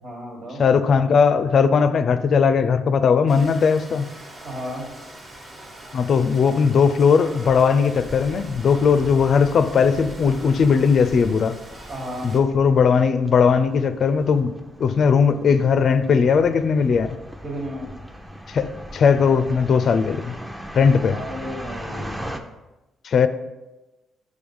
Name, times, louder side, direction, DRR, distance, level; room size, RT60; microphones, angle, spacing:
voice 1, 0.0-0.6 4.4-4.9 11.9-12.3 17.4-17.9 21.1-22.2, equal, 55° right, -1 dB, 1.7 m, -33 dB
voice 2, 0.6-4.1 5.9-11.6 12.2-14.5 14.8-17.2 18.5-20.3 20.7-21.2 23.0-23.3, left 6 dB, 55° left, 11 dB, 0.4 m, -18 dB
Rain, 3.3-12.4, right 1 dB, 40° right, 1.4 m, -42 dB
sound 1, 7.4-22.4, equal, 10° right, 0.6 m, -39 dB
6.4 x 3.4 x 5.5 m, 1.0 s
cardioid pair, 90°, 0 cm